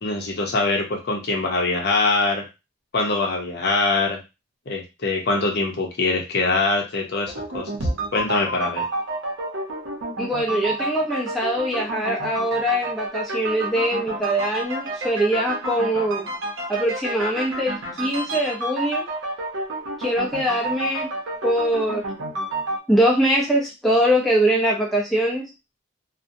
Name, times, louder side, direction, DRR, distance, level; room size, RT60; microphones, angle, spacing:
voice 1, 0.0-2.4 2.9-4.2 4.7-7.7 8.1-8.8, left 3 dB, 50° left, 1 dB, 0.6 m, -23 dB
sound 1, 7.3-22.8, right 1 dB, 65° right, 0.8 m, -30 dB
voice 2, 10.2-16.3 16.7-19.1 20.0-21.1 21.4-22.1 22.9-25.5, equal, ahead, -3 dB, 0.5 m, -22 dB
2.7 x 2.1 x 2.6 m, 0.25 s
head